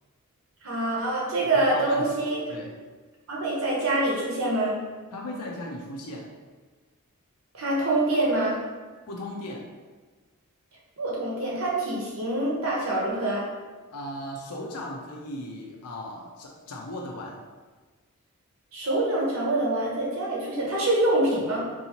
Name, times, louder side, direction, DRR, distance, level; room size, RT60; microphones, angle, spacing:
voice 1, 0.6-2.4 3.3-4.8 7.5-8.6 11.0-13.4 18.7-21.6, right 2 dB, 65° right, -4 dB, 1.0 m, -25 dB
voice 2, 1.5-2.1 2.5-2.7 5.1-6.3 9.1-9.6 13.9-17.4, left 1 dB, 90° left, -1 dB, 0.6 m, -37 dB
4.6 x 2.7 x 2.9 m, 1.4 s
head